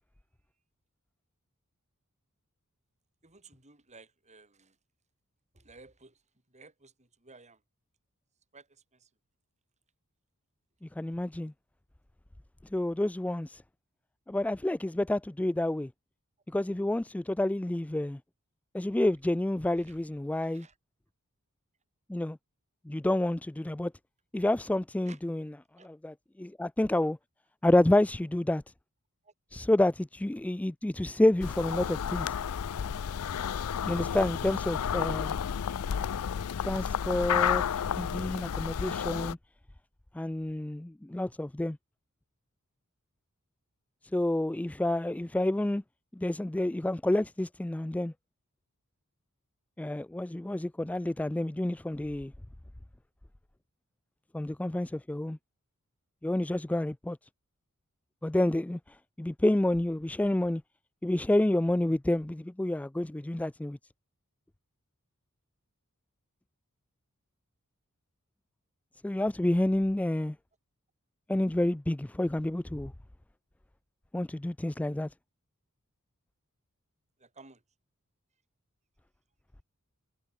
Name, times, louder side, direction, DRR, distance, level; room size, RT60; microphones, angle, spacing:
voice 1, 3.2-4.8 5.5-6.2 6.5-7.6 8.5-9.1 19.8-20.0 20.4-20.8 25.0-25.2 25.8-25.9 29.2-29.3 77.2-77.6, right 3 dB, 30° right, 7.6 m, -55 dB
voice 2, 10.8-11.5 12.7-13.6 14.3-15.9 16.5-18.2 18.7-20.7 22.1-22.4 22.9-23.9 24.3-25.5 25.8-27.2 27.6-28.6 29.5-32.3 33.9-35.3 36.7-39.4 40.1-41.8 44.1-45.8 46.1-48.1 49.8-52.3 54.3-55.4 56.2-57.2 58.2-60.6 61.0-63.8 69.0-70.4 71.3-72.9 74.1-75.1, left 1 dB, 5° left, 0.3 m, -29 dB
sound 1, 31.4-39.3, left 8 dB, 75° left, 0.4 m, -31 dB
head